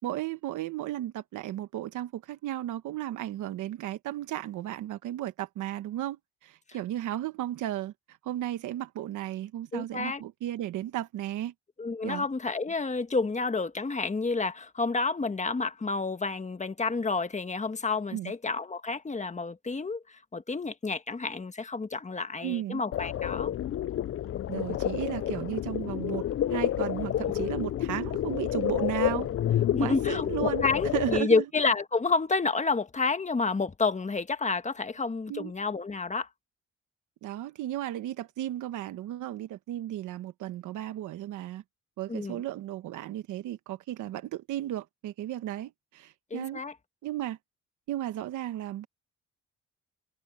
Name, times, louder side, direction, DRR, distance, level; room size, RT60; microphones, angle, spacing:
voice 1, 0.0-11.5 12.0-12.2 18.1-18.3 22.4-22.8 24.5-26.2 26.5-31.4 35.3-35.5 37.2-41.6 42.0-46.6 47.0-47.4 47.9-48.9, right 13 dB, 85° right, 1.2 m, -34 dB
voice 2, 9.7-10.2 11.8-23.5 29.7-36.3 42.1-42.4 46.3-46.7, left 4 dB, 25° left, 1.5 m, -29 dB
sound 1, 22.9-31.2, left 11 dB, 50° left, 0.5 m, -29 dB
cardioid pair, 90°, 30 cm